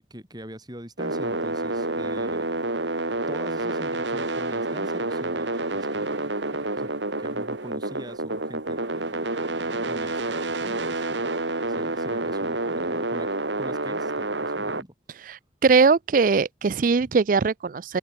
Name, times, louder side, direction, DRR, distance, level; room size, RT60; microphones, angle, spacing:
voice 1, 0.0-2.6 3.3-6.9 7.2-11.3 11.7-13.3 13.6-14.9 17.0-17.1, equal, 25° right, 7.9 m, -42 dB
sound 1, 1.0-14.8, right 2 dB, 90° right, 3.2 m, -28 dB
voice 2, 15.3-18.0, right 4 dB, 50° right, 0.4 m, -21 dB
open air
head